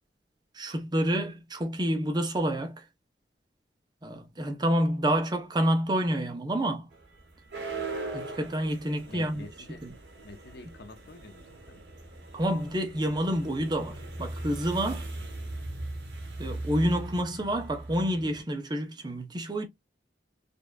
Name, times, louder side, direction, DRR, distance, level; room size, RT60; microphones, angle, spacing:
voice 1, 0.5-2.8 4.0-6.9 8.1-9.4 9.8-9.9 12.3-15.1 16.4-19.7, equal, 25° right, 0.7 m, -28 dB
sound 1, 6.9-18.4, right 2 dB, 75° right, 1.1 m, -39 dB
voice 2, 9.1-9.9 10.2-11.8, left 2 dB, 60° left, 0.8 m, -47 dB
5.2 x 2.5 x 2.2 m
head